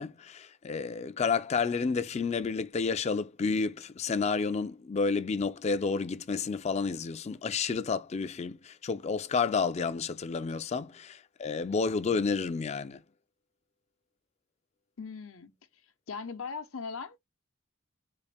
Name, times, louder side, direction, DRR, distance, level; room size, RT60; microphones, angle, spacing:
voice 1, 0.0-13.0, left 5 dB, 30° left, 0.3 m, -30 dB
voice 2, 15.0-15.5 16.1-17.2, left 5 dB, 80° left, 0.8 m, -39 dB
4.2 x 2.5 x 3.4 m
head